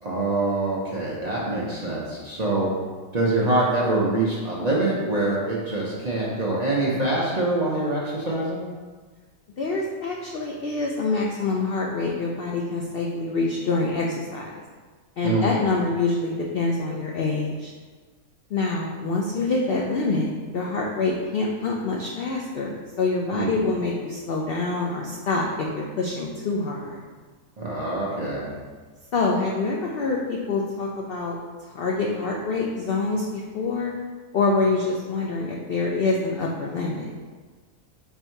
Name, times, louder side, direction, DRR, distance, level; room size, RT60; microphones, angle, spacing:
voice 1, 0.0-2.7 3.1-8.6 15.2-15.7 23.3-23.6 27.6-28.5, right 2 dB, 40° right, -6 dB, 0.6 m, -25 dB
voice 2, 9.6-14.6 15.2-17.7 18.5-27.0 29.1-31.4 31.7-33.9 34.3-37.1, left 3 dB, 70° left, -1 dB, 0.5 m, -26 dB
4.5 x 2.7 x 4.5 m, 1.4 s
omnidirectional pair, 1.5 m